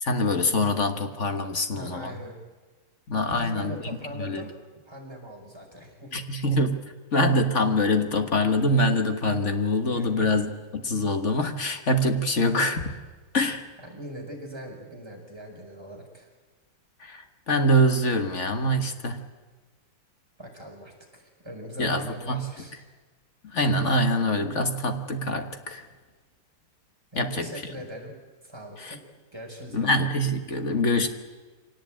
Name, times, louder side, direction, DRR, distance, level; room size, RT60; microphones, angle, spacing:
voice 1, 0.0-2.2 3.1-3.7 4.2-4.4 6.1-6.8 7.1-10.5 10.8-12.9 13.3-13.6 17.0-19.2 21.8-22.5 23.5-25.8 27.2-27.5 28.8-28.9 29.7-31.1, left 1 dB, 40° left, 6 dB, 1.5 m, -24 dB
voice 2, 1.8-2.4 3.3-4.5 4.8-6.1 9.9-10.3 13.8-16.3 20.4-22.7 27.1-28.1 28.4-29.0 29.3-29.9, equal, 10° right, 0 dB, 5.0 m, -41 dB
24.5 x 18.5 x 8.9 m, 1.3 s
omnidirectional pair, 2.4 m